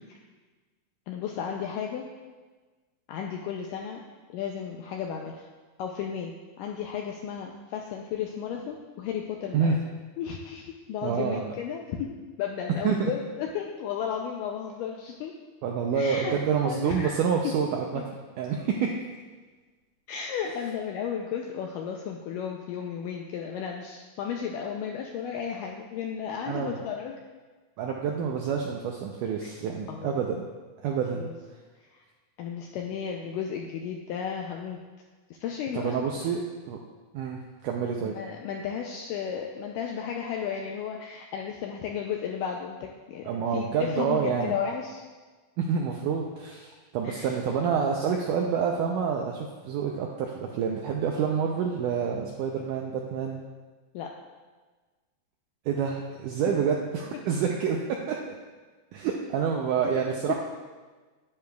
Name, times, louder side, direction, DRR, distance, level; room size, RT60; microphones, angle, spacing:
voice 1, 1.1-2.1 3.1-4.0 4.3-5.5 5.8-9.8 10.2-15.3 15.9-16.4 16.6-17.2 17.9-18.0 20.1-27.2 29.4-29.5 29.9-30.2 31.1-31.3 31.9-32.0 32.4-34.8 35.3-36.3 38.0-45.0 47.0-47.3 53.9-54.1 59.8-59.9 60.3-60.4, left 7 dB, 85° left, 1 dB, 1.9 m, -34 dB
voice 2, 11.0-11.5 12.8-13.1 15.6-18.0 18.4-18.9 26.5-26.7 27.8-30.4 30.8-31.3 35.7-36.4 36.7-36.8 37.1-38.2 43.2-44.5 45.6-53.4 55.6-58.2 58.9-60.3, right 6 dB, 90° right, 0 dB, 1.8 m, -28 dB
10.0 x 9.7 x 2.3 m, 1.3 s
omnidirectional pair, 4.3 m